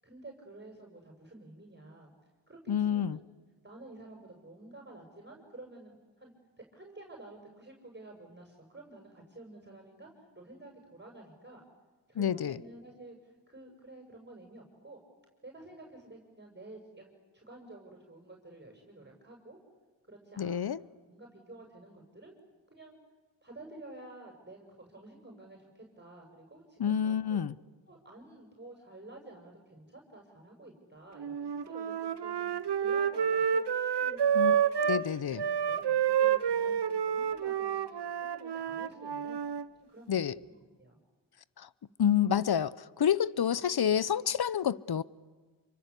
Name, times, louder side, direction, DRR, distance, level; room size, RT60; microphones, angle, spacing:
voice 1, 0.0-2.1 2.5-3.3 3.6-11.6 12.1-15.0 15.4-19.6 20.1-22.4 22.7-23.0 23.4-27.4 27.9-32.5 32.8-33.7 34.0-39.4 39.8-41.0, right 2 dB, 20° right, 7.0 m, -51 dB
voice 2, 2.7-3.2 12.2-12.6 20.4-20.8 26.8-27.5 34.3-34.5 34.9-35.4 40.1-40.3 41.6-41.7 42.0-45.0, left 9 dB, 55° left, 0.9 m, -28 dB
Wind instrument woodwind instrument, 31.2-35.0 35.4-39.6, right 8 dB, 60° right, 1.1 m, -29 dB
28.0 x 24.5 x 8.4 m
cardioid pair, 50°, 46 cm